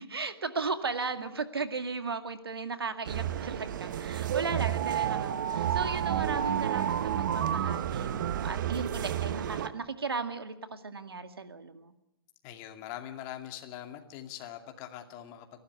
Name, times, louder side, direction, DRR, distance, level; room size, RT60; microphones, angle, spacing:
voice 1, 0.0-11.9, right 4 dB, 90° right, 9 dB, 2.1 m, -36 dB
sound 1, 3.1-9.7, right 10 dB, 55° right, 1.3 m, -30 dB
voice 2, 5.8-6.1 12.4-15.6, left 11 dB, 35° left, 5 dB, 2.5 m, -43 dB
30.0 x 12.0 x 9.6 m, 0.91 s
hypercardioid pair, 135°, 12 cm